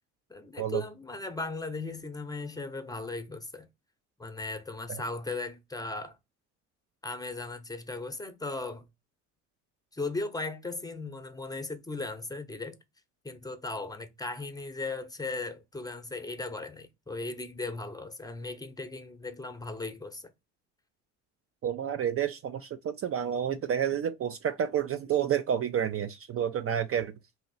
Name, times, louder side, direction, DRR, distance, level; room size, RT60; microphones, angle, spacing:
voice 1, 0.3-3.7 4.2-6.2 7.0-8.9 9.9-12.8 13.2-20.3, left 3 dB, 10° left, 0.8 m, -37 dB
voice 2, 21.6-27.1, right 9 dB, 40° right, 0.4 m, -30 dB
2.9 x 2.8 x 3.9 m
hypercardioid pair, 65°, 36 cm